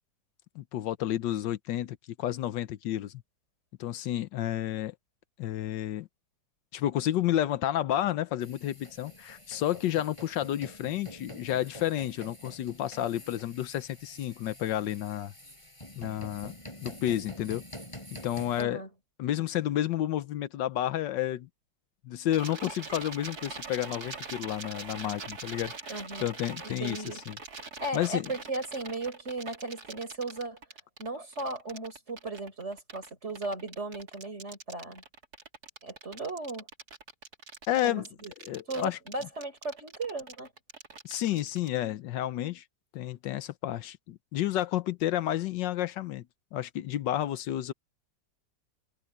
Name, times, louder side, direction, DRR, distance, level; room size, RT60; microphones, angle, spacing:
voice 1, 0.5-3.1 3.8-4.9 5.4-6.1 6.7-15.3 16.0-16.5 16.8-17.6 18.2-18.8 19.2-21.5 22.0-27.0 27.3-27.4 27.9-28.3 37.7-38.0 38.4-39.0 41.0-42.6 42.9-46.2 46.5-47.7, left 12 dB, 80° left, 1.4 m, -31 dB
sound 1, 8.4-18.6, left 1 dB, 15° left, 5.0 m, -47 dB
voice 2, 18.6-18.9 25.9-26.3 26.6-27.2 27.8-30.6 31.0-35.0 35.8-36.7 37.8-38.3 38.7-40.5, right 2 dB, 35° right, 4.7 m, -36 dB
sound 2, 22.3-41.7, right 4 dB, 55° right, 3.4 m, -43 dB
omnidirectional pair, 1.9 m